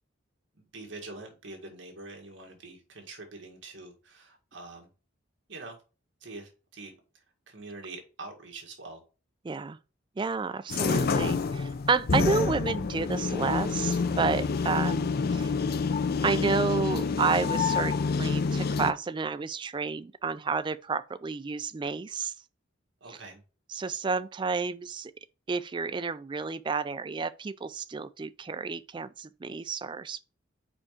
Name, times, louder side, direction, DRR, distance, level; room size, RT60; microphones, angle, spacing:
voice 1, 0.5-4.9 5.5-5.8 6.2-9.0 23.0-23.4, right 3 dB, 65° right, 1.8 m, -45 dB
voice 2, 9.4-9.8 10.2-15.5 16.2-22.3 23.1-23.2 23.7-25.1 25.5-30.2, right 4 dB, 25° right, 0.3 m, -30 dB
sound 1, 10.7-18.9, left 4 dB, 50° left, 0.4 m, -28 dB
5.0 x 4.8 x 5.0 m
head